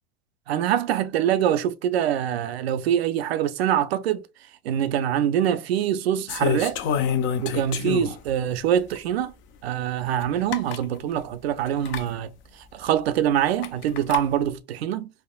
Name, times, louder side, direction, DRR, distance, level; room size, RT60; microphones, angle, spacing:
voice 1, 0.5-4.2 4.6-6.8 7.4-9.3 9.6-12.3 12.7-15.1, right 10 dB, 85° right, 0.5 m, -24 dB
sound 1, 6.3-8.3 8.9-9.0 10.2-10.3 10.5-10.8 11.8-12.0 13.6-14.2, left 7 dB, 40° left, 0.5 m, -27 dB
3.4 x 2.1 x 2.2 m
hypercardioid pair, 115°, 30 cm